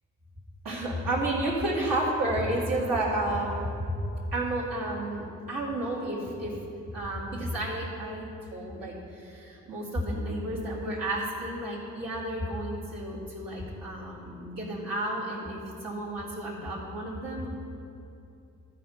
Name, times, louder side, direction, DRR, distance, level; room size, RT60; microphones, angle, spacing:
voice 1, 0.6-3.7 4.3-6.6 6.9-17.5, right 1 dB, 75° right, -8 dB, 2.5 m, -31 dB
13.0 x 4.4 x 5.6 m, 2.6 s
cardioid pair, 65°, 33 cm